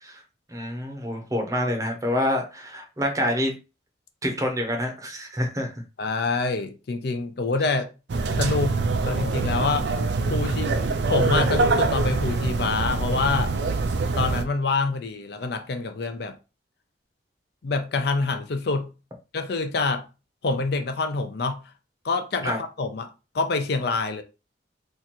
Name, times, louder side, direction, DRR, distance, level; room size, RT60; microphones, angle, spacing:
voice 1, 0.5-3.5 4.2-5.8 22.4-22.6, left 1 dB, 15° right, 0.7 m, -27 dB
voice 2, 6.0-7.9 8.4-9.9 10.3-10.7 11.1-13.6 14.1-16.4 17.6-18.9 19.3-20.1 20.4-21.7 22.0-23.1 23.3-24.2, left 3 dB, 55° left, 0.5 m, -26 dB
sound 1, 8.1-14.4, right 3 dB, 65° right, 0.4 m, -24 dB
2.9 x 2.5 x 4.2 m
head